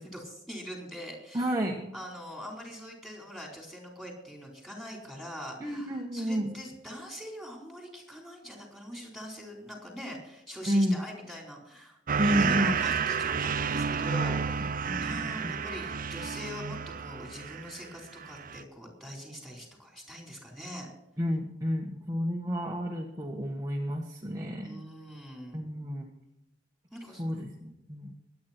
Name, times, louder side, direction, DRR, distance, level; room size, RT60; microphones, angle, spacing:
voice 1, 0.0-1.5 1.9-20.9 24.6-25.6 26.9-27.2, equal, ahead, 0 dB, 4.4 m, -43 dB
voice 2, 1.3-1.9 5.6-6.5 10.7-11.0 12.2-12.7 14.9-15.6 21.2-24.7 25.5-26.1 27.2-28.1, equal, 15° right, -1 dB, 1.5 m, -30 dB
sound 1, 12.1-17.9 18.2-18.6, right 6 dB, 45° right, 0.6 m, -31 dB
23.0 x 9.5 x 4.5 m, 0.87 s
head